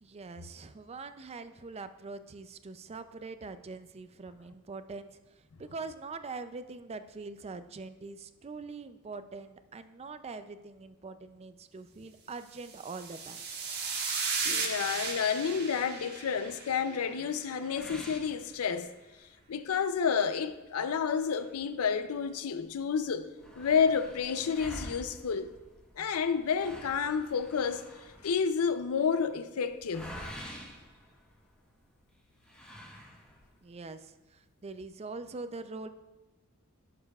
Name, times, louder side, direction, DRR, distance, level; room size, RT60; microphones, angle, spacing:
voice 1, 0.0-5.2 5.6-13.4 33.6-35.9, right 3 dB, 30° right, 0.4 m, -43 dB
sound 1, 12.6-17.1, right 4 dB, 50° right, 1.4 m, -35 dB
voice 2, 14.4-18.9 19.5-23.3 23.6-25.5 26.0-27.8 28.2-30.2, left 6 dB, 75° left, 0.5 m, -30 dB
sound 2, 17.7-19.2 19.6-19.7 20.1-20.2 21.0-22.4 22.7-22.8 23.0-31.7 32.4-33.6, equal, 5° left, 1.1 m, -48 dB
16.5 x 6.8 x 2.4 m
head